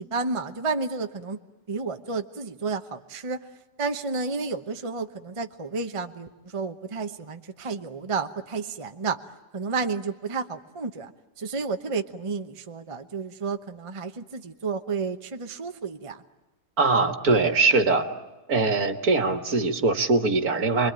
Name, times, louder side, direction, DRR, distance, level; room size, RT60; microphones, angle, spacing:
voice 1, 0.0-1.4 1.7-3.4 3.8-9.2 9.5-11.1 11.4-16.2, right 4 dB, 25° right, 6 dB, 0.9 m, -31 dB
voice 2, 16.8-18.1 18.5-20.9, right 3 dB, 65° right, 6 dB, 2.2 m, -22 dB
29.0 x 22.0 x 8.9 m, 1.1 s
omnidirectional pair, 1.7 m